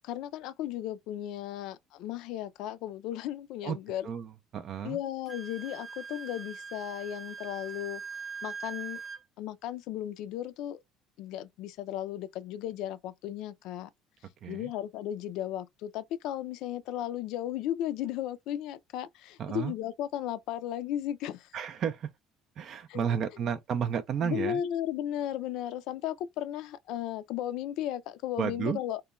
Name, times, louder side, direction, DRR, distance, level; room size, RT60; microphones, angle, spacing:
voice 1, 0.0-4.1 4.8-8.0 8.4-9.0 9.4-10.8 11.2-13.9 14.5-21.5 22.9-23.2 24.2-29.0, left 11 dB, 70° left, 0.3 m, -35 dB
voice 2, 4.0-5.0 14.4-14.7 19.4-19.7 21.5-22.1 22.6-24.6 28.4-28.8, right 7 dB, 50° right, 0.3 m, -32 dB
Wind instrument woodwind instrument, 5.3-9.2, right 5 dB, 10° left, 0.7 m, -41 dB
3.0 x 2.1 x 2.3 m
supercardioid pair, 90°, 0 cm